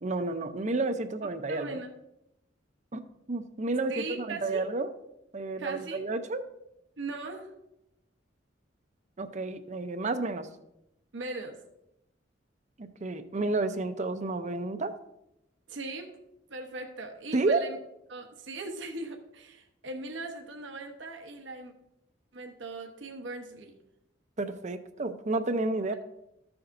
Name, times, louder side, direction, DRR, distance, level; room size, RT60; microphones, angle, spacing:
voice 1, 0.0-1.7 2.9-3.0 3.3-4.9 5.3-6.4 9.2-10.5 12.8-14.9 17.3-17.7 24.4-25.9, right 2 dB, 40° right, 10 dB, 0.6 m, -30 dB
voice 2, 1.5-1.9 3.9-4.7 5.6-6.0 7.0-7.5 11.1-11.6 15.7-16.1 16.5-17.8 18.1-21.7 22.3-23.7, right 3 dB, 85° right, 3 dB, 1.0 m, -39 dB
14.0 x 7.0 x 2.6 m, 0.86 s
head